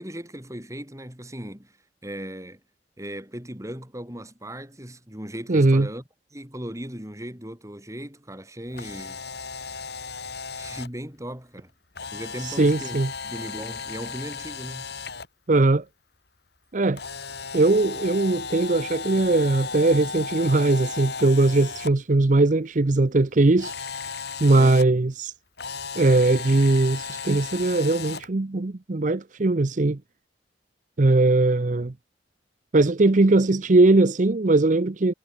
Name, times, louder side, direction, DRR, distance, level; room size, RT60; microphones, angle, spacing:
voice 1, 0.0-1.7 2.0-2.6 3.0-6.0 6.3-9.2 10.6-11.7 12.1-14.9 24.5-24.8, equal, 15° right, 6.0 m, -37 dB
voice 2, 5.5-5.9 12.4-13.1 15.5-15.8 16.7-17.0 17.5-23.9 24.4-25.3 26.0-30.0 31.0-31.9 32.7-35.1, right 2 dB, 40° right, 0.7 m, -20 dB
Camera, 8.7-10.9 12.0-15.3 17.0-21.9 23.6-24.8 25.6-28.3, left 5 dB, 60° left, 3.4 m, -35 dB
head